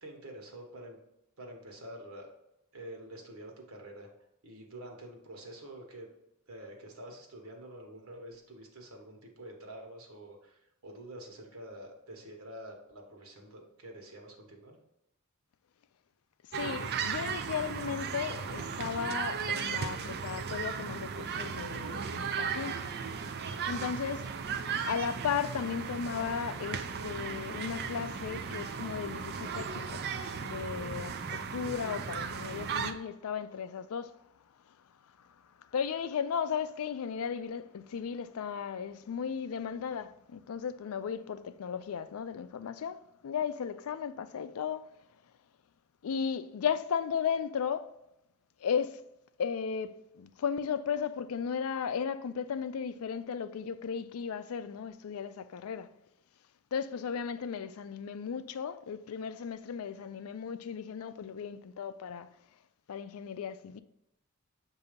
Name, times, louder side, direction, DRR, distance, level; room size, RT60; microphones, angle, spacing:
voice 1, 0.0-1.0 1.4-2.3 2.7-4.1 4.4-6.1 6.5-14.8, right 1 dB, 70° right, 1.3 m, -47 dB
voice 2, 16.5-22.8 23.7-24.3 24.8-30.1 30.4-34.2 35.7-44.9 46.0-47.9 48.6-49.0 49.4-55.9 56.7-62.3 62.9-63.8, left 7 dB, 75° left, 0.4 m, -35 dB
sound 1, 16.5-32.9, right 6 dB, 50° right, 0.4 m, -36 dB
6.8 x 2.7 x 5.1 m
head